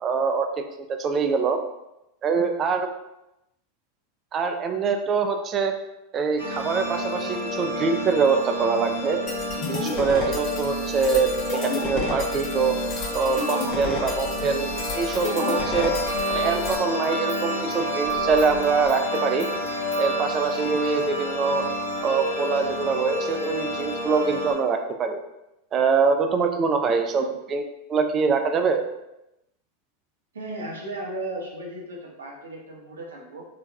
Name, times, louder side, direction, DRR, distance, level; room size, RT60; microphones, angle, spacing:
voice 1, 0.0-1.6 2.2-2.9 4.3-5.8 6.1-9.2 9.7-12.7 13.1-14.7 14.9-15.9 16.3-19.5 20.0-21.6 22.0-25.2 25.7-27.6 27.9-28.8, right 5 dB, 30° right, 5 dB, 0.3 m, -24 dB
sound 1, 6.4-24.5, equal, 90° left, 0.8 m, -29 dB
sound 2, 9.3-16.8, left 4 dB, 35° left, 0.6 m, -32 dB
Human voice / Scissors, 13.0-16.8 17.0-20.1, left 6 dB, 20° left, 1.0 m, -46 dB
voice 2, 30.3-33.4, right 2 dB, 75° right, -2 dB, 0.8 m, -35 dB
3.9 x 2.3 x 2.2 m, 0.90 s
figure-of-eight pair, 90°, 0 cm